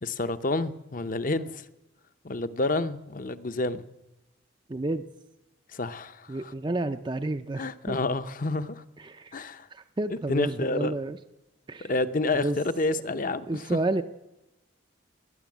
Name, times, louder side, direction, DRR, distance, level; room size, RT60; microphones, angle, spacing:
voice 1, 0.0-1.6 2.2-3.9 5.7-6.5 7.6-8.8 9.3-9.7 10.1-10.9 11.8-13.7, left 2 dB, 40° left, 12 dB, 0.7 m, -29 dB
voice 2, 4.7-5.1 6.3-8.0 9.0-9.3 9.7-11.2 11.7-11.9 12.3-12.6 13.5-14.0, right 2 dB, 20° right, 9 dB, 0.4 m, -30 dB
18.5 x 11.0 x 7.3 m, 0.96 s
head